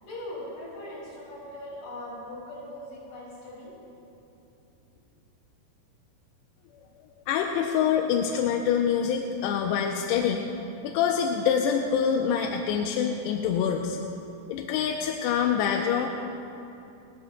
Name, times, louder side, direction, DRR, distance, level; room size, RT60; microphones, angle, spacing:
voice 1, 0.0-3.7, left 1 dB, 65° left, -5 dB, 5.8 m, -40 dB
voice 2, 7.3-10.5 10.8-14.0 14.5-16.1, left 7 dB, 85° left, 2 dB, 2.7 m, -25 dB
29.5 x 12.5 x 2.2 m, 2.8 s
omnidirectional pair, 4.8 m